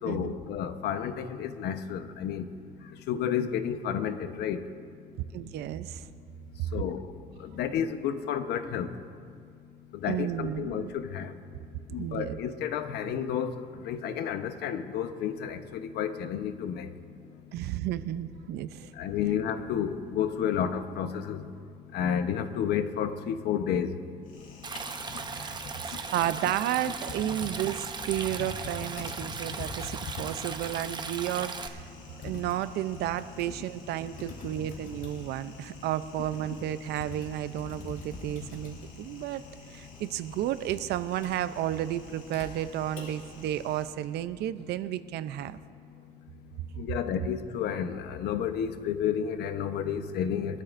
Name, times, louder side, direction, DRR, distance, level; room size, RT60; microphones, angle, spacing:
voice 1, 0.0-2.5 2.9-4.7 6.7-7.1 7.4-9.0 9.9-11.4 11.9-16.9 18.9-21.5 21.9-24.0 46.8-50.6, left 8 dB, 75° left, 8 dB, 1.0 m, -31 dB
voice 2, 5.3-6.0 10.1-11.0 12.0-12.4 17.5-18.9 25.4-31.9 32.2-39.4 39.7-45.6, right 12 dB, 75° right, 13 dB, 0.6 m, -32 dB
Typing, 24.2-43.9, left 3 dB, 55° left, 3.9 m, -45 dB
Stream, 24.6-31.7, right 5 dB, 25° right, 0.7 m, -38 dB
23.5 x 13.0 x 2.6 m, 2.2 s
cardioid pair, 110°, 17 cm